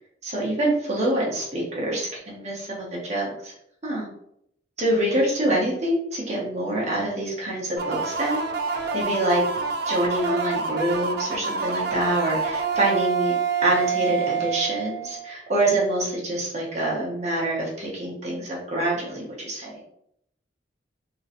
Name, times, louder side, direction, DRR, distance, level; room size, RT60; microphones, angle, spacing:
voice 1, 0.2-3.5 3.8-4.1 4.8-9.4 9.9-13.3 13.6-19.8, right 1 dB, 35° right, -4 dB, 0.9 m, -26 dB
sound 1, 7.8-15.3, right 5 dB, 60° right, 0.4 m, -27 dB
3.0 x 2.8 x 2.6 m, 0.74 s
head